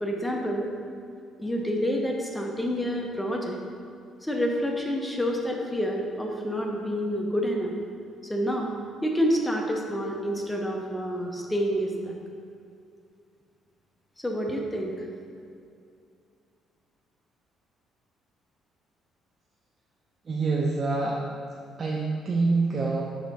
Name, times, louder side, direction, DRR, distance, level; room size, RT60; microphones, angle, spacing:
voice 1, 0.0-0.7 1.4-3.6 4.2-7.8 8.3-8.7 9.0-12.2 14.2-15.1, equal, 5° left, 0 dB, 0.6 m, -28 dB
voice 2, 20.3-21.2 21.8-23.0, right 3 dB, 30° right, -4 dB, 0.6 m, -26 dB
6.3 x 3.8 x 4.1 m, 2.4 s
cardioid pair, 145°, 0 cm